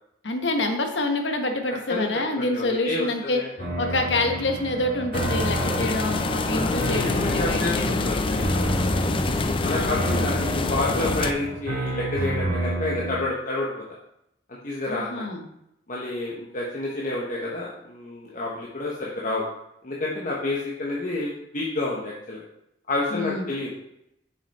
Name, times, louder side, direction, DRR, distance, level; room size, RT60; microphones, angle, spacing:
voice 1, 0.2-3.4 3.8-8.1 9.7-10.0 14.9-15.4 23.1-23.5, left 2 dB, 90° left, 5 dB, 1.2 m, -27 dB
voice 2, 2.4-3.1 3.3-3.5 3.9-4.0 5.5-5.8 6.5-9.1 9.6-13.8 14.5-15.3 15.9-19.4 19.8-22.4 22.9-23.7, left 2 dB, 50° left, -4 dB, 1.1 m, -29 dB
sound 1, 3.6-13.2, right 2 dB, 55° right, 2.4 m, -30 dB
sound 2, 5.1-11.3, left 3 dB, 30° left, 0.4 m, -26 dB
7.0 x 5.4 x 4.2 m, 0.80 s
head